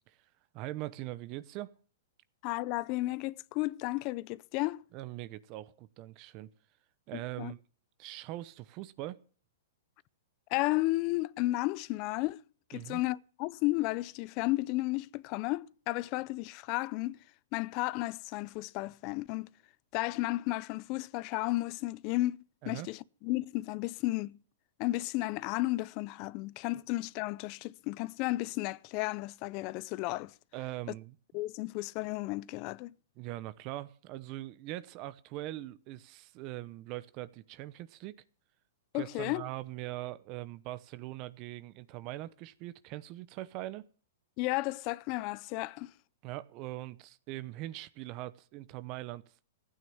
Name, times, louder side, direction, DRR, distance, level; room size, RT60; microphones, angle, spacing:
voice 1, 0.5-1.7 4.9-6.5 7.1-7.6 8.0-9.2 12.7-13.0 22.6-22.9 30.5-31.2 33.2-38.2 38.9-43.8 46.2-49.2, right 16 dB, 35° right, 0.8 m, -41 dB
voice 2, 2.4-4.8 7.4-7.5 10.5-12.4 12.7-17.2 17.5-19.5 19.9-22.4 22.6-24.4 24.8-30.3 31.3-32.9 38.9-39.4 44.4-45.9, left 19 dB, 35° left, 0.6 m, -33 dB
15.5 x 9.5 x 7.0 m
hypercardioid pair, 150°, 0 cm